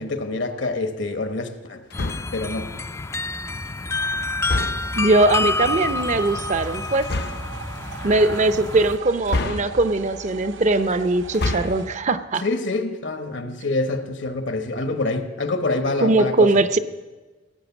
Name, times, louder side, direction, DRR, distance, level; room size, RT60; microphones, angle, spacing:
voice 1, 0.0-1.8 2.3-2.7 12.4-16.5, left 2 dB, 75° left, 8 dB, 1.2 m, -26 dB
sound 1, 1.9-2.5 4.4-5.1 7.0-7.5 9.3-10.1 11.2-11.9, left 2 dB, 60° left, 0.6 m, -27 dB
sound 2, 1.9-9.0, left 3 dB, 15° left, 0.3 m, -28 dB
voice 2, 5.0-7.1 8.0-12.4 16.0-16.8, right 2 dB, 40° right, 11 dB, 0.6 m, -20 dB
sound 3, 5.6-11.9, right 6 dB, 90° right, 0.7 m, -39 dB
17.0 x 7.7 x 7.2 m, 1.3 s
head